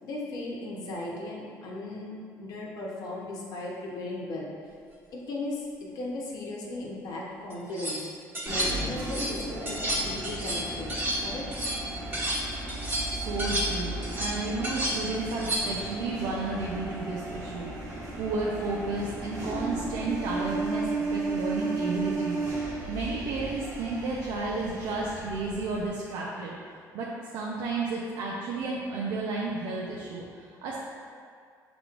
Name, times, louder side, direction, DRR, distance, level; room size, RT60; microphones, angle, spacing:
voice 1, 0.0-4.5 5.1-8.1 8.4-10.9 11.2-11.5, left 2 dB, 65° left, -3 dB, 0.9 m, -36 dB
sound 1, 7.5-8.0 8.3-9.4 9.7-12.4 12.7-15.8, right 1 dB, 30° right, 1.1 m, -31 dB
sound 2, 8.5-25.9, right 2 dB, 55° right, 1.1 m, -35 dB
voice 2, 13.0-26.6 26.9-30.8, right 3 dB, 85° right, -4 dB, 0.6 m, -32 dB
5.9 x 3.4 x 2.5 m, 2.2 s
cardioid pair, 125°, 7 cm